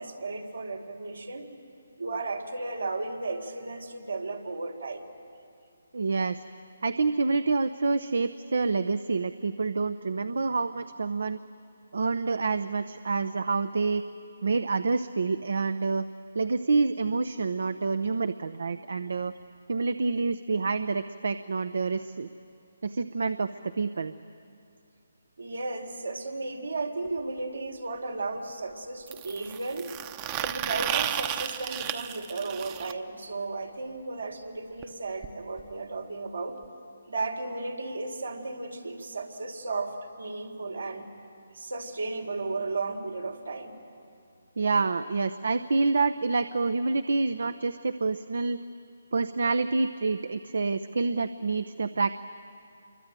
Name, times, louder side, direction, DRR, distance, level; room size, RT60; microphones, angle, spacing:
voice 1, 0.0-1.4 2.0-5.1 25.4-29.9 30.4-36.6 37.1-41.1 41.5-43.7, right 3 dB, 85° right, 3 dB, 3.7 m, -34 dB
voice 2, 5.9-6.4 6.8-11.4 11.9-14.0 14.4-16.1 16.3-19.3 19.7-22.3 22.8-24.1 44.6-48.6 49.1-52.2, right 4 dB, 70° right, 12 dB, 0.8 m, -27 dB
sound 1, 27.1-27.2 29.1-32.9 34.8-34.9 35.2-35.3 35.6-35.7 36.6-36.7, right 11 dB, 25° right, 0.9 m, -33 dB
27.0 x 23.5 x 9.2 m, 2.5 s
figure-of-eight pair, 150°, 0 cm